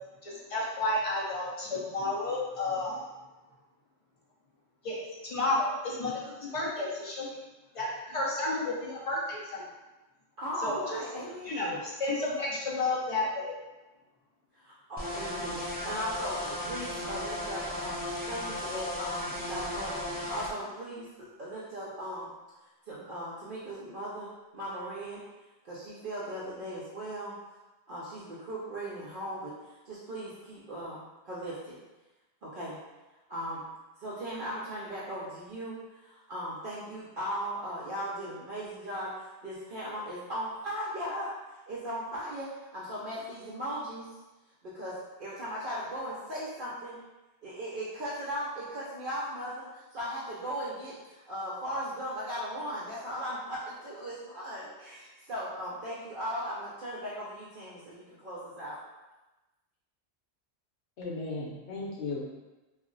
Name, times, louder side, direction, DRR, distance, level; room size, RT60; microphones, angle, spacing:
voice 1, 0.2-3.0 4.8-7.3 7.7-9.6 10.6-11.0 11.4-13.6, left 2 dB, 40° left, -5 dB, 0.6 m, -31 dB
voice 2, 10.4-11.8 14.5-18.0 18.3-22.3 22.9-25.2 25.6-27.3 27.9-31.8 32.4-32.8 33.3-33.7 34.0-44.1 44.6-46.9 47.4-58.8, equal, 60° right, -7 dB, 0.7 m, -38 dB
sound 1, 15.0-20.5, left 1 dB, 15° right, 0.3 m, -35 dB
voice 3, 61.0-62.2, left 3 dB, 85° left, -4 dB, 1.0 m, -36 dB
2.4 x 2.0 x 3.7 m, 1.1 s
omnidirectional pair, 1.1 m